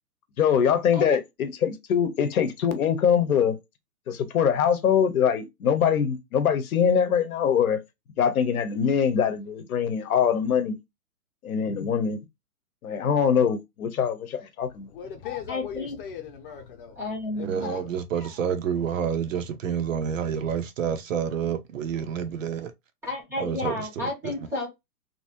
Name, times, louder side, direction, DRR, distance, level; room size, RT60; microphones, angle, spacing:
voice 1, 0.4-3.5 4.1-7.8 8.2-10.8 11.4-12.2 12.8-14.9, left 7 dB, 60° left, 0.9 m, -23 dB
voice 2, 14.6-17.0 17.3-18.4, left 8 dB, 35° left, 0.8 m, -39 dB
voice 3, 15.5-16.0 17.0-17.7 23.0-24.7, left 2 dB, 5° right, 0.6 m, -31 dB
voice 4, 17.4-22.7 23.4-24.1, right 7 dB, 55° right, 0.5 m, -28 dB
3.0 x 2.6 x 2.8 m
hypercardioid pair, 140°, 49 cm